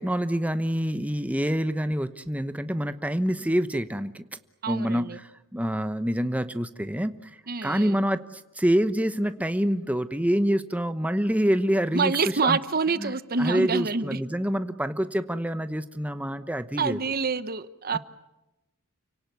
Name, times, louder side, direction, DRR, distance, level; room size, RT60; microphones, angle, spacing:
voice 1, 0.0-4.2 4.7-12.1 12.4-12.6 13.0-17.0 17.9-18.0, equal, 5° right, 1.0 m, -26 dB
voice 2, 4.6-5.2 7.5-8.0 11.9-14.2 16.8-18.0, right 4 dB, 40° right, 1.0 m, -27 dB
30.0 x 18.0 x 9.4 m
head